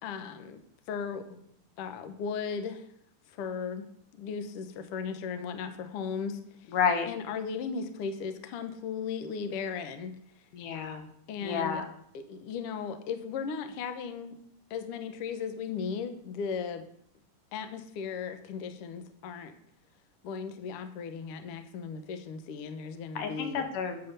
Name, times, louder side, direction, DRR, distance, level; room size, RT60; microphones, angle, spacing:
voice 1, 0.0-0.6 0.9-1.4 1.8-2.8 3.3-3.9 4.1-6.7 7.1-10.1 11.3-11.8 12.1-14.3 14.7-16.8 17.5-19.5 20.2-23.6, left 6 dB, 90° left, 8 dB, 1.2 m, -36 dB
voice 2, 6.7-7.1 10.5-11.1 11.4-11.9 23.2-24.1, left 6 dB, 75° left, 6 dB, 2.7 m, -30 dB
9.4 x 5.8 x 6.6 m, 0.68 s
omnidirectional pair, 3.9 m